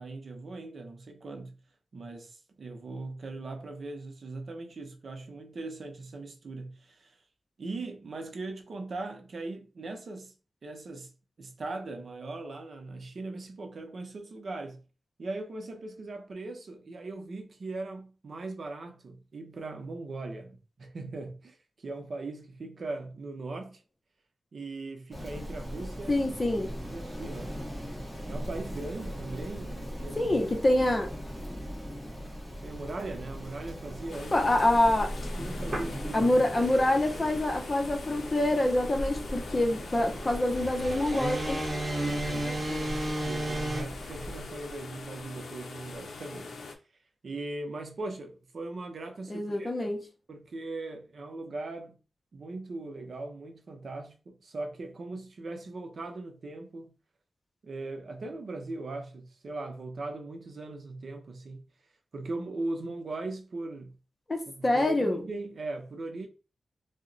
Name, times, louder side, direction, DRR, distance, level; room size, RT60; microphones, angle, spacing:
voice 1, 0.0-1.6 1.9-7.2 7.6-10.3 10.6-11.1 11.4-14.8 15.2-23.8 24.5-26.2 26.9-27.5 28.2-30.5 32.6-34.5 35.4-36.3 41.9-46.6 47.2-50.0 50.3-52.0 52.3-56.9 57.6-61.6 62.1-64.0 64.5-66.3, right 2 dB, 60° right, 0.6 m, -39 dB
Rain, 25.1-44.4, equal, 5° left, 1.2 m, -39 dB
voice 2, 26.1-26.7 30.2-31.1 34.3-35.1 36.1-41.6 49.3-50.1 64.3-65.2, left 1 dB, 30° left, 0.7 m, -26 dB
sound 1, 34.1-46.7, left 4 dB, 80° left, 0.5 m, -43 dB
sound 2, 35.1-43.8, right 1 dB, 30° right, 1.0 m, -35 dB
2.8 x 2.1 x 3.8 m
wide cardioid pair, 120°, 0 cm